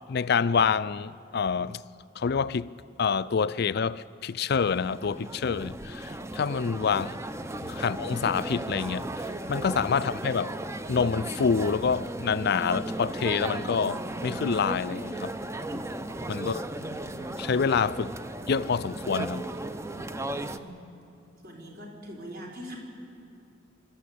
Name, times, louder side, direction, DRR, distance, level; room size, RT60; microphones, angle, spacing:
voice 1, 0.1-1.8 2.2-2.7 3.0-7.1 7.6-9.1 9.5-10.6 10.9-15.3 16.3-16.6 17.4-18.2 18.5-19.4, left 6 dB, 55° left, 0.4 m, -27 dB
sound 1, 4.5-20.6, right 1 dB, 15° right, 0.6 m, -36 dB
voice 2, 16.4-17.1 20.4-20.8 21.4-22.8, right 1 dB, 50° right, 4.1 m, -43 dB
26.5 x 13.0 x 8.5 m
head